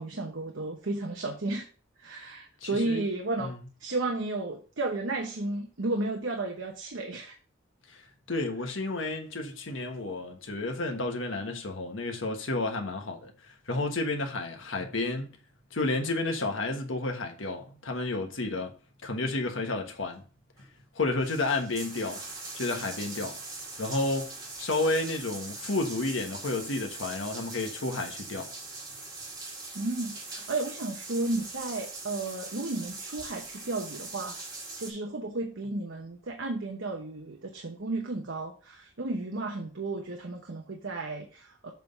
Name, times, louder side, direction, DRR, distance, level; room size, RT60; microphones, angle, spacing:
voice 1, 0.0-1.7 2.0-3.5 3.8-7.3 29.7-34.4 34.8-41.7, right 2 dB, 75° right, 1.0 m, -33 dB
voice 2, 2.6-3.0 3.4-3.6 7.9-8.0 8.3-15.4 15.7-18.7 19.0-20.2 20.9-22.2 22.5-23.4 23.8-28.5, left 2 dB, 85° left, 1.4 m, -31 dB
sound 1, 20.6-20.7 21.0-34.9, right 3 dB, 20° right, 2.0 m, -42 dB
7.6 x 3.6 x 5.3 m
head